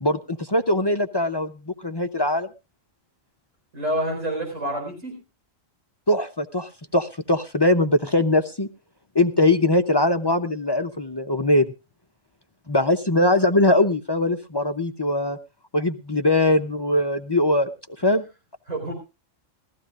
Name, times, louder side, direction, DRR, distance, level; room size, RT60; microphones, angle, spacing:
voice 1, 0.0-2.5 6.1-8.7 9.1-11.7 12.7-15.4 15.7-17.7 18.0-18.2, left 1 dB, 30° left, 7 dB, 0.4 m, -21 dB
voice 2, 3.7-5.2 18.7-18.9, right 1 dB, 75° right, 0 dB, 4.9 m, -28 dB
20.0 x 14.5 x 2.5 m, 0.29 s
omnidirectional pair, 1.4 m